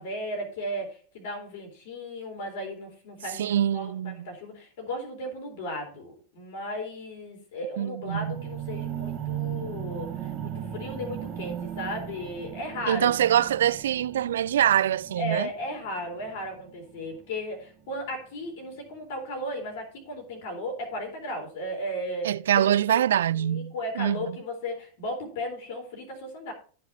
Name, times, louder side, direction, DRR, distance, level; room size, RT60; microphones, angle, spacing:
voice 1, 0.0-13.1 15.2-23.0 23.3-26.5, left 1 dB, 50° left, 3.7 m, -35 dB
voice 2, 3.4-4.3 7.8-8.4 12.9-15.5 22.2-24.2, right 11 dB, 60° right, 0.4 m, -24 dB
sound 1, 8.0-18.1 18.8-18.9, right 10 dB, 30° right, 2.1 m, -37 dB
14.0 x 5.8 x 4.1 m
figure-of-eight pair, 90°, 0 cm